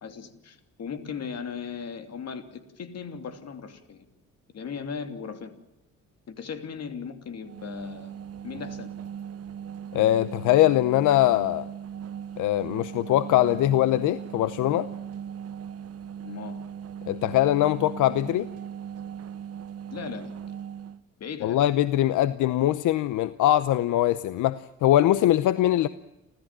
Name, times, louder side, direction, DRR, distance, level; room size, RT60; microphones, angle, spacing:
voice 1, 0.0-4.1 4.5-5.6 6.3-8.1 8.4-8.9 16.2-16.6 19.9-20.3 21.2-21.6, left 6 dB, 55° left, 8 dB, 2.9 m, -37 dB
sound 1, 7.4-21.0, right 8 dB, 50° right, 0.9 m, -38 dB
voice 2, 9.9-11.7 12.4-14.9 17.1-18.5 21.4-25.9, left 13 dB, 85° left, 15 dB, 0.8 m, -22 dB
29.5 x 13.5 x 7.5 m, 0.95 s
cardioid pair, 90°, 30 cm